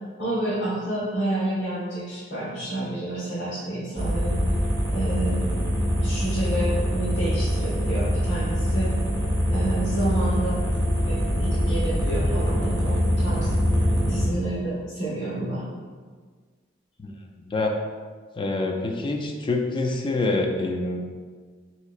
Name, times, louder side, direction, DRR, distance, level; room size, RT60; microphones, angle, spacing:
voice 1, 0.2-4.4 4.9-8.9 9.5-10.6 11.0-13.5 14.1-15.6, right 1 dB, 70° left, -12 dB, 1.2 m, -29 dB
sound 1, 4.0-14.2, equal, 20° right, 0.7 m, -24 dB
voice 2, 18.4-21.0, left 2 dB, 25° left, 3 dB, 0.3 m, -26 dB
3.5 x 3.0 x 2.4 m, 1.5 s
head